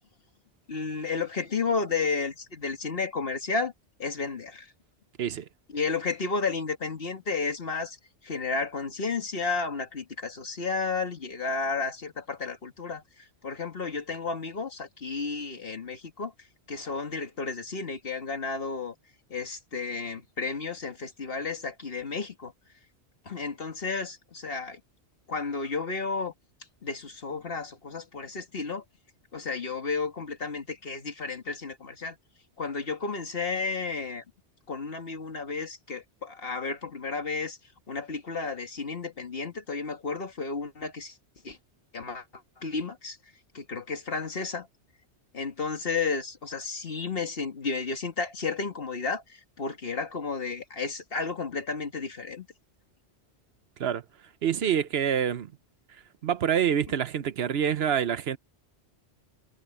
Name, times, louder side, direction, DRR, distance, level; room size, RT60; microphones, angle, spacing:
voice 1, 0.7-3.7 4.0-4.7 5.7-8.0 8.2-13.0 13.4-16.3 16.7-18.9 19.3-22.5 23.3-24.8 25.3-26.3 26.8-28.8 29.3-32.2 32.6-34.2 34.7-37.6 37.9-41.1 41.4-41.6 41.9-42.2 42.6-43.2 43.5-44.7 45.3-52.5, left 4 dB, 55° left, 2.0 m, -32 dB
voice 2, 54.4-55.5 56.2-58.4, right 8 dB, 65° right, 1.0 m, -26 dB
omnidirectional pair, 1.2 m